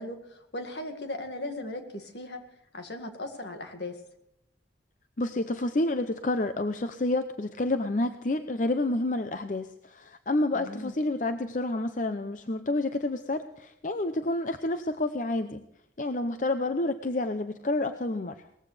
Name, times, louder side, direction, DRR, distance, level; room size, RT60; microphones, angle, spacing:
voice 1, 0.0-2.4 2.7-4.0 10.5-10.9, left 1 dB, 70° left, 6 dB, 2.0 m, -37 dB
voice 2, 5.2-15.6 16.0-18.4, left 2 dB, 45° left, 9 dB, 0.6 m, -29 dB
19.5 x 15.0 x 3.4 m, 0.80 s
head